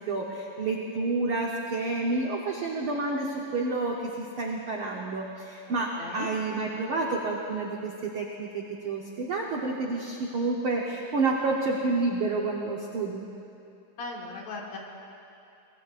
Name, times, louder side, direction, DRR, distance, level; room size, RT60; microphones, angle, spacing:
voice 1, 0.0-13.2, right 3 dB, 85° right, -1 dB, 1.1 m, -29 dB
voice 2, 6.0-6.3 14.0-14.8, left 3 dB, 55° left, -1 dB, 2.6 m, -37 dB
25.5 x 20.5 x 2.5 m, 2.7 s
omnidirectional pair, 4.0 m